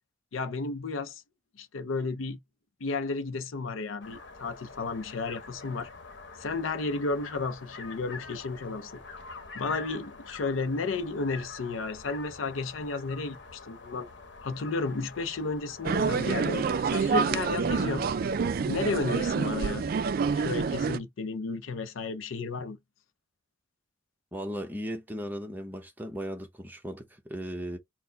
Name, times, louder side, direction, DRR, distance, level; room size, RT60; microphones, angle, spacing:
voice 1, 0.3-1.2 1.6-2.4 2.8-5.9 6.4-9.0 9.5-14.1 14.4-18.0 18.6-19.9 20.3-22.8, left 3 dB, 85° left, 0.6 m, -33 dB
sound 1, 4.0-17.6, left 4 dB, 60° left, 1.1 m, -46 dB
sound 2, 15.8-21.0, right 5 dB, 50° right, 0.3 m, -27 dB
voice 2, 24.3-27.8, equal, 10° right, 0.8 m, -37 dB
4.3 x 2.1 x 3.9 m
head